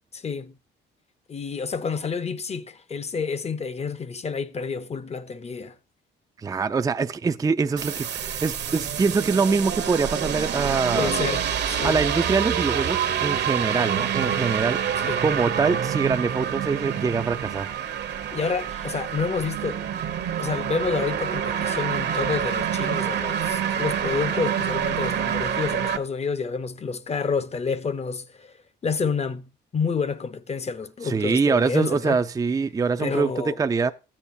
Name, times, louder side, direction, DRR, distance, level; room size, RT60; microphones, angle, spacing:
voice 1, 0.1-0.6 1.3-5.7 10.9-12.0 15.0-15.2 18.3-19.8 20.4-28.5 28.8-32.2 33.0-33.6, left 5 dB, 30° left, 0.7 m, -29 dB
voice 2, 6.4-11.1 11.8-14.8 15.2-17.7 31.0-33.9, right 4 dB, 20° right, 0.4 m, -24 dB
sound 1, 7.8-26.0, right 8 dB, 60° right, 0.9 m, -27 dB
13.5 x 8.6 x 2.6 m
cardioid pair, 90°, 20 cm